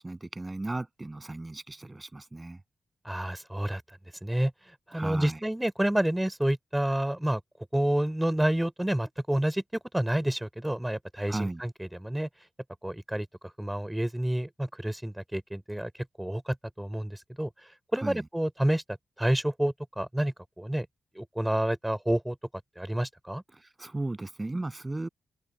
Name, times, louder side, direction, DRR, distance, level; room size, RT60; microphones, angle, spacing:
voice 1, 0.0-2.6 4.9-5.4 11.3-11.6 18.0-18.2 23.5-25.1, right 2 dB, 25° right, 7.6 m, -35 dB
voice 2, 3.0-3.8 4.2-4.5 4.9-7.4 7.7-12.3 12.8-13.3 13.6-15.9 16.2-17.5 17.9-20.9 21.2-22.4 22.8-23.4, right 1 dB, 10° right, 3.5 m, -29 dB
open air
supercardioid pair, 45°, 0 cm